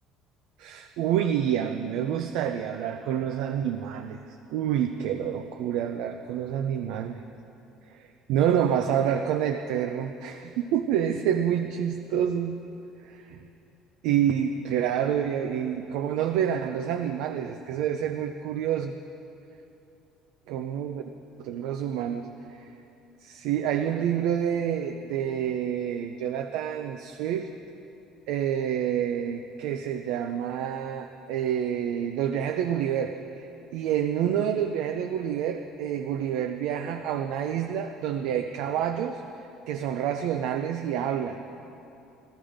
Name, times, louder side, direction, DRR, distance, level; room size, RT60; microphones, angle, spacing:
voice 1, 0.6-4.2 4.5-7.2 7.9-12.6 13.0-13.4 14.0-18.9 20.5-21.1 21.4-22.7 23.2-27.5 28.3-33.5 33.7-39.2 39.7-41.4, right 9 dB, 75° right, 6 dB, 0.6 m, -28 dB
14.5 x 14.5 x 5.1 m, 2.8 s
cardioid pair, 170°, 0 cm